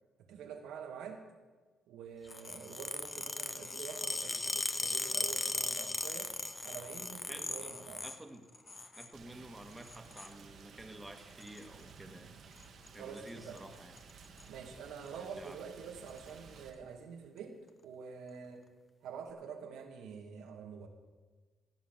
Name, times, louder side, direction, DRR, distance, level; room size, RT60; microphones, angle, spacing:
voice 1, 0.3-1.3 1.9-6.3 6.6-8.0 13.0-13.6 14.5-17.6 17.8-18.6 19.0-20.9, right 6 dB, 85° right, 3 dB, 2.0 m, -47 dB
sound 1, 2.3-8.2 8.5-9.1 9.8-10.3 11.4-11.6 12.6-12.9 13.2-13.3 13.6-13.7 14.0-14.4 15.1-15.2 16.1-16.2, left 3 dB, 25° left, 1.0 m, -38 dB
voice 2, 7.2-7.7 8.0-8.5 9.0-12.3 12.9-14.0 15.1-15.6, right 1 dB, 10° right, 5 dB, 1.8 m, -51 dB
Rain, 9.1-16.7, right 5 dB, 60° right, 1.8 m, -55 dB
15.5 x 7.5 x 7.4 m, 1.3 s
cardioid pair, 90°, 0 cm